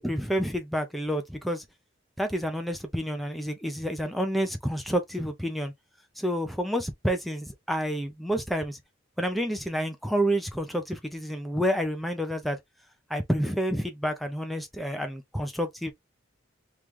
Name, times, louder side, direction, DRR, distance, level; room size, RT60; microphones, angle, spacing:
voice 1, 0.0-1.6 2.2-5.7 6.2-8.8 9.2-12.6 13.1-15.9, equal, ahead, 0.6 m, -29 dB
3.2 x 3.1 x 3.6 m
head